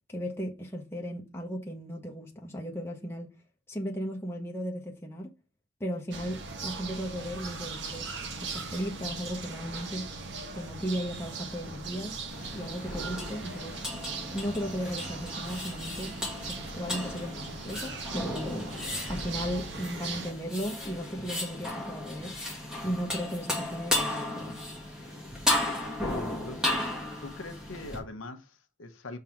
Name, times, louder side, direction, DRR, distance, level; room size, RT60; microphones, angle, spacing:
voice 1, 0.1-3.3 3.7-5.3 5.8-8.1 8.4-10.1 10.5-12.2 12.5-13.8 14.3-16.1 16.5-18.6 19.1-22.3 22.8-24.6, equal, 10° left, 1.3 m, -36 dB
sound 1, 6.1-20.3, right 4 dB, 65° right, 1.3 m, -39 dB
sound 2, 12.3-28.0, left 1 dB, 5° right, 1.9 m, -34 dB
voice 2, 25.8-26.9 27.2-29.2, left 2 dB, 90° left, 0.9 m, -42 dB
5.7 x 3.8 x 5.8 m
head